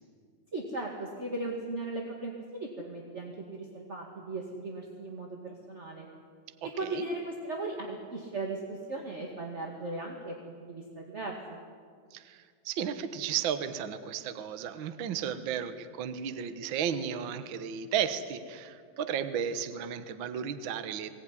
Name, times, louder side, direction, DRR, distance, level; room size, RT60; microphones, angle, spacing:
voice 1, 0.5-2.3 2.6-6.0 6.8-11.6, right 2 dB, 25° right, 0 dB, 1.7 m, -37 dB
voice 2, 6.6-7.0 12.1-21.1, right 8 dB, 80° right, 10 dB, 1.1 m, -34 dB
22.5 x 18.5 x 10.0 m, 2.1 s
omnidirectional pair, 4.1 m